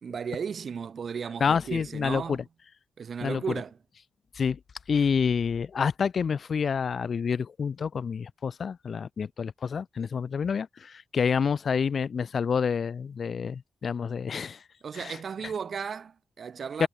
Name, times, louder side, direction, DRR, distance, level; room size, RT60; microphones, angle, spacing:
voice 1, 0.0-2.4 3.0-3.8 14.8-16.9, right 6 dB, 50° right, 2.8 m, -35 dB
voice 2, 1.4-2.4 3.2-3.4 4.3-4.6 4.9-14.6 14.9-15.2 16.8-16.9, left 6 dB, 45° left, 0.6 m, -28 dB
wide cardioid pair, 145°, 0 cm